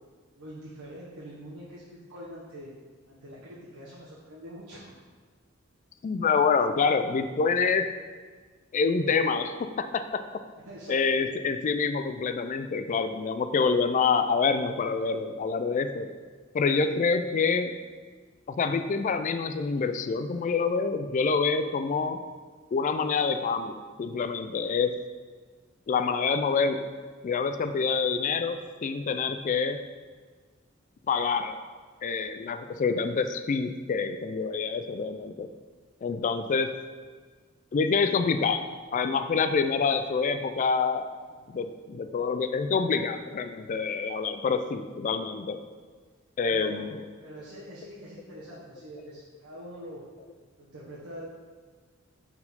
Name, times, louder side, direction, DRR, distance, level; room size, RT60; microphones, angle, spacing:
voice 1, 0.4-2.7 3.1-4.9 10.6-11.0 41.3-41.4 46.4-46.9 47.2-50.0 50.6-51.3, equal, 85° right, -7 dB, 1.1 m, -44 dB
voice 2, 6.0-7.9 8.7-10.2 10.9-16.1 16.5-17.8 18.5-22.2 22.7-24.9 25.9-26.8 27.2-29.8 31.1-31.5 32.0-35.5 36.0-36.7 37.7-38.6 38.9-41.1 41.5-45.6 46.4-47.0, left 5 dB, 40° left, 9 dB, 0.3 m, -26 dB
4.4 x 4.3 x 5.4 m, 1.5 s
head